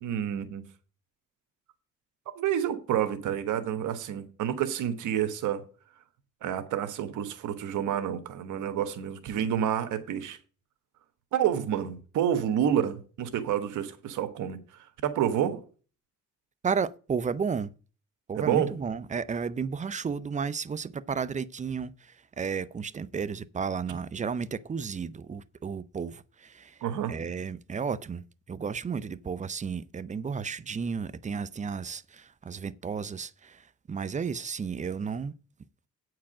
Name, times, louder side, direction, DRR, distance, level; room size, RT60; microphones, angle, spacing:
voice 1, 0.0-0.6 2.4-5.6 6.4-10.4 11.3-14.6 15.0-15.6 18.4-18.7 26.8-27.2, right 9 dB, 80° right, 1.3 m, -29 dB
voice 2, 16.6-17.7 18.3-26.8 27.1-35.3, right 6 dB, 25° right, 0.5 m, -33 dB
8.5 x 4.7 x 7.3 m
cardioid pair, 90°, 30 cm